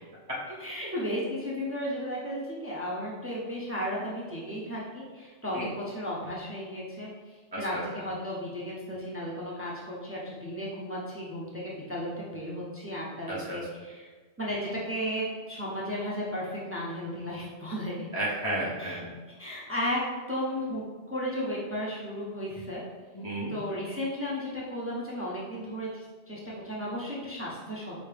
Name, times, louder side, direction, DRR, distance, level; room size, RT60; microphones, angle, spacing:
voice 1, 0.6-7.1 7.6-14.1 14.4-17.9 18.8-19.0 19.4-20.0 20.3-20.8 21.1-22.8 23.5-27.9, equal, 15° right, -6 dB, 0.6 m, -34 dB
voice 2, 7.5-8.1 13.3-13.6 18.1-19.1 23.1-23.6, right 1 dB, 25° left, -6 dB, 0.5 m, -33 dB
5.1 x 2.8 x 3.3 m, 1.4 s
omnidirectional pair, 1.2 m